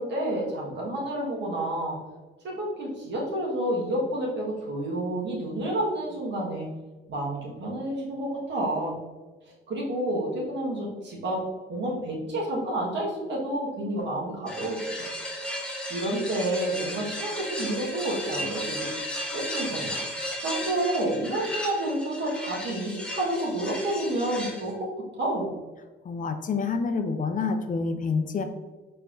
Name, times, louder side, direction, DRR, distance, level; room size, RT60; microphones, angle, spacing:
voice 1, 0.0-2.0 2.4-6.7 7.1-8.9 9.7-11.4 11.7-14.8 15.9-18.9 19.3-20.0 20.4-24.9 25.1-25.5, right 1 dB, 65° right, -3 dB, 1.5 m, -29 dB
sound 1, 14.5-24.7, equal, 5° left, 1.0 m, -35 dB
voice 2, 26.0-28.4, left 4 dB, 40° left, 8 dB, 0.5 m, -27 dB
4.4 x 4.2 x 2.6 m, 1.3 s
cardioid pair, 90°, 20 cm